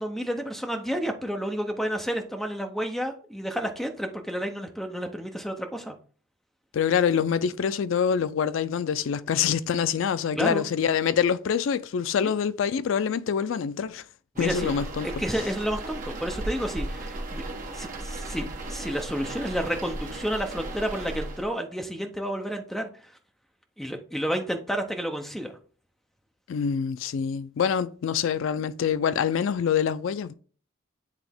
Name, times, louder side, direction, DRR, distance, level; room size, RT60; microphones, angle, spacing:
voice 1, 0.0-5.9 10.3-10.6 12.2-12.3 14.4-14.7 15.0-17.5 17.7-22.9 23.8-25.6, equal, ahead, 0.6 m, -30 dB
voice 2, 6.7-14.0 14.4-15.1 26.5-30.3, left 7 dB, 65° left, 0.3 m, -25 dB
sound 1, 14.4-21.5, right 2 dB, 40° right, 1.1 m, -35 dB
8.3 x 3.4 x 3.5 m
head